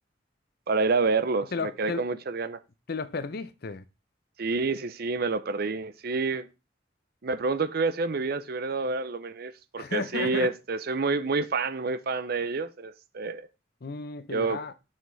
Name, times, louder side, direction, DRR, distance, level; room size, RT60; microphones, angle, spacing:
voice 1, 0.7-2.6 4.4-6.5 7.2-13.5 14.3-14.6, right 4 dB, 55° right, 0.6 m, -28 dB
voice 2, 1.5-2.0 2.9-3.8 9.8-10.5 13.8-14.7, left 4 dB, 55° left, 0.6 m, -33 dB
7.4 x 5.8 x 3.2 m
head